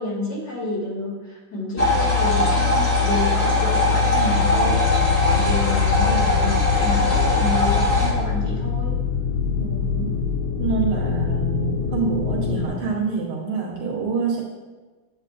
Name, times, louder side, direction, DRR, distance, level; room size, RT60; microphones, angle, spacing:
voice 1, 0.0-8.9, left 2 dB, 55° left, -5 dB, 3.2 m, -29 dB
sound 1, 1.8-8.1, left 3 dB, 5° left, 2.1 m, -20 dB
sound 2, 4.3-12.7, left 6 dB, 75° left, 1.6 m, -25 dB
voice 2, 9.6-10.1 10.6-14.4, right 5 dB, 90° right, -4 dB, 2.0 m, -26 dB
10.0 x 7.6 x 2.5 m, 1.3 s
omnidirectional pair, 2.3 m